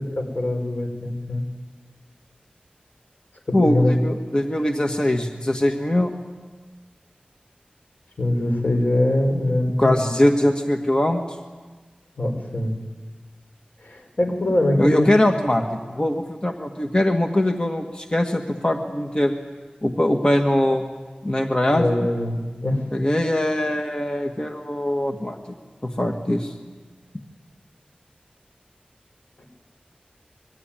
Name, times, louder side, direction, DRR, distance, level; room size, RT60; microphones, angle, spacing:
voice 1, 0.0-1.4 3.5-4.0 8.2-10.0 12.2-12.8 13.8-15.1 21.7-22.8, left 1 dB, 75° left, 3 dB, 5.2 m, -23 dB
voice 2, 3.5-6.1 9.8-11.2 14.8-19.3 19.8-20.8 21.2-22.1 22.9-25.4 25.8-26.5, left 1 dB, 30° left, 3 dB, 1.8 m, -22 dB
25.5 x 22.5 x 9.1 m, 1.4 s
wide cardioid pair, 55°, 3 cm